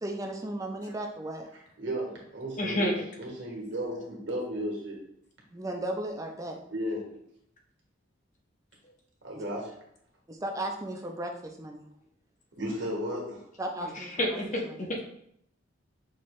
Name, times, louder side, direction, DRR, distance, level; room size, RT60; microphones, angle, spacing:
voice 1, 0.0-1.5 5.5-6.6 10.3-11.9 13.6-14.4 14.7-14.8, right 1 dB, 15° right, 2 dB, 0.5 m, -35 dB
voice 2, 1.5-5.0 6.7-7.1 9.2-9.7 12.6-13.5, equal, 65° right, -1 dB, 1.4 m, -34 dB
voice 3, 2.6-3.1 13.8-15.1, left 1 dB, 40° left, 1 dB, 0.8 m, -30 dB
5.8 x 2.7 x 3.1 m, 0.71 s
head